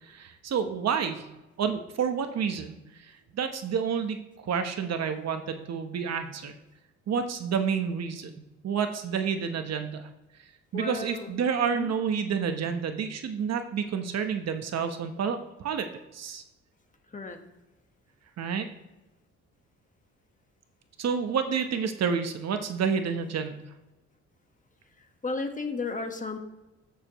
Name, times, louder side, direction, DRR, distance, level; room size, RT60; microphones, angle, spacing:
voice 1, 0.0-1.3 1.6-6.6 7.1-8.3 8.6-10.1 10.7-15.9 16.1-16.4 18.4-18.7 21.0-23.6, right 6 dB, 60° right, 7 dB, 1.0 m, -29 dB
voice 2, 10.7-11.3 11.7-11.9 17.1-17.4 25.2-26.4, left 3 dB, 25° left, 5 dB, 1.4 m, -33 dB
13.5 x 6.7 x 3.1 m, 0.99 s
cardioid pair, 90°, 30 cm